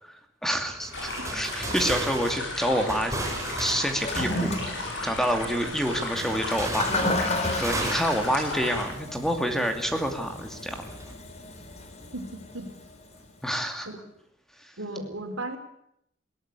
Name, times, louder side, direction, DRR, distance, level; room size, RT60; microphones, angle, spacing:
voice 1, 0.0-3.1 3.5-4.8 5.0-7.3 7.5-10.8 13.4-13.9 14.6-14.7, equal, ahead, 5 dB, 2.6 m, -28 dB
sound 1, 0.8-4.9 6.1-9.3 9.6-9.8 10.7-11.1, right 2 dB, 15° right, 4.4 m, -35 dB
sound 2, 0.9-8.8, left 2 dB, 65° left, 7.5 m, -35 dB
Toilet flush, 3.9-13.2, left 1 dB, 35° left, 3.5 m, -33 dB
voice 2, 12.1-12.7 13.9-14.0 14.8-15.6, right 1 dB, 80° right, 5 dB, 4.1 m, -35 dB
20.5 x 18.0 x 8.4 m, 0.74 s
head